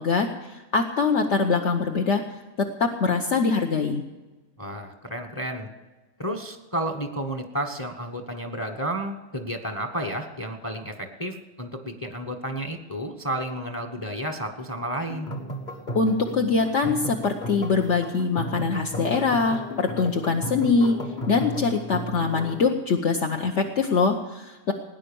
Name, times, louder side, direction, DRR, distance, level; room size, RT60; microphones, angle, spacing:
voice 1, 0.0-2.2 2.6-4.0 15.9-21.0 21.3-24.7, left 4 dB, 55° left, 2 dB, 1.2 m, -23 dB
voice 2, 4.6-5.7 6.2-15.3, right 1 dB, 15° left, 6 dB, 1.0 m, -31 dB
sound 1, 15.1-22.7, equal, 35° left, 1.5 m, -35 dB
18.0 x 10.0 x 7.0 m, 1.2 s
omnidirectional pair, 1.5 m